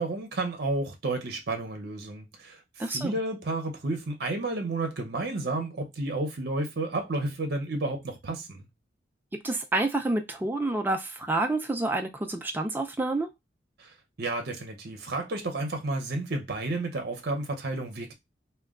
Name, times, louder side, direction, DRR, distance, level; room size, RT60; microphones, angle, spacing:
voice 1, 0.0-8.7 13.8-18.1, right 2 dB, 60° right, 0.7 m, -31 dB
voice 2, 2.8-3.2 9.4-13.3, right 2 dB, 10° right, 0.3 m, -28 dB
2.2 x 2.1 x 3.6 m
head